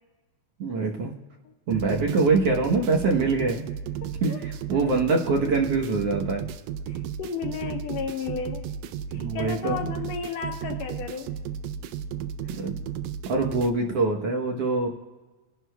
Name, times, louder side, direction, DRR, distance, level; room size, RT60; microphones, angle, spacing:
voice 1, 0.6-1.1 1.7-3.7 4.2-6.5 9.1-9.9 12.5-12.8 13.3-14.9, right 3 dB, 60° right, 0 dB, 1.8 m, -24 dB
sound 1, 1.7-13.7, right 8 dB, 80° right, 1.6 m, -34 dB
voice 2, 4.7-5.0 6.9-8.7 9.1-11.3 12.4-12.7, left 7 dB, 75° left, 4 dB, 1.7 m, -34 dB
24.5 x 11.0 x 2.2 m, 1.2 s
omnidirectional pair, 3.5 m